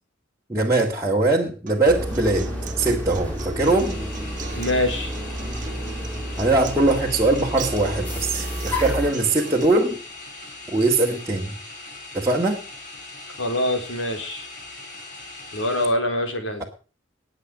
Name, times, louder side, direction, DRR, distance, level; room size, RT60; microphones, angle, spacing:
voice 1, 0.5-2.5 2.8-4.0 6.4-10.0 10.7-11.6 12.1-12.6, right 2 dB, 15° right, -4 dB, 1.8 m, -21 dB
Acoustic guitar, 1.7-9.6, right 4 dB, 40° right, 1.5 m, -38 dB
sound 1, 1.8-9.1, equal, 10° left, 6.3 m, -30 dB
sound 2, 3.6-15.9, left 2 dB, 40° left, 7.2 m, -40 dB
voice 2, 4.5-5.1 13.4-14.5 15.5-16.6, left 1 dB, 75° left, 6 dB, 4.0 m, -24 dB
20.5 x 7.6 x 5.0 m, 0.37 s
head